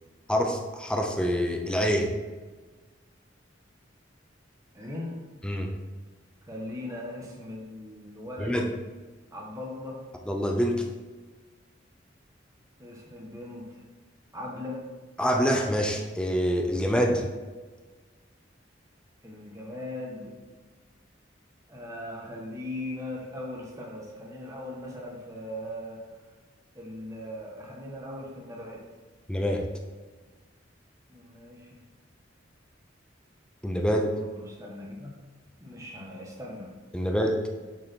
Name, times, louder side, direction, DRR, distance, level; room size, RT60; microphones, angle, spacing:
voice 1, 0.3-2.1 5.4-5.7 8.4-8.7 10.3-10.8 15.2-17.2 29.3-29.7 33.6-34.1 36.9-37.4, equal, 5° left, 2 dB, 0.7 m, -26 dB
voice 2, 4.7-5.2 6.5-8.6 9.3-10.0 12.8-13.8 14.3-14.8 19.2-20.4 21.7-26.2 26.7-28.8 31.1-31.8 33.9-35.1 35.6-36.7, left 1 dB, 15° right, -2 dB, 1.5 m, -39 dB
6.7 x 6.0 x 4.6 m, 1.3 s
head